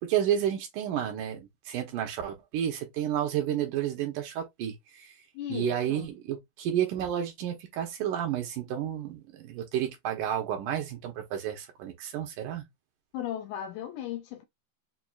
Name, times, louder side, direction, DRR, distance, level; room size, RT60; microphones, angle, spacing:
voice 1, 0.0-5.1 5.5-12.7, right 10 dB, 75° right, 2.4 m, -31 dB
voice 2, 5.3-6.1 13.1-14.4, left 11 dB, 80° left, 1.8 m, -36 dB
5.8 x 2.5 x 2.4 m
omnidirectional pair, 3.9 m